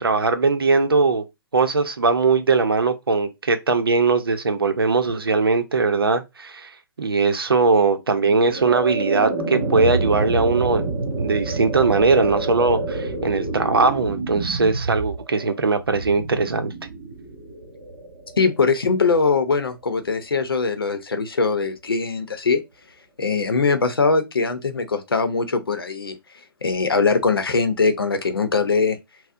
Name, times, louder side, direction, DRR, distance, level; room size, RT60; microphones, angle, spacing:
voice 1, 0.0-1.2 1.5-6.7 7.0-10.9 11.2-16.7, right 4 dB, 90° right, 0.6 m, -20 dB
sound 1, 8.1-19.2, right 3 dB, 55° right, 1.1 m, -28 dB
voice 2, 18.4-22.6 23.2-26.1 26.6-29.0, left 4 dB, 90° left, 0.7 m, -21 dB
4.2 x 2.1 x 2.5 m
hypercardioid pair, 130°, 12 cm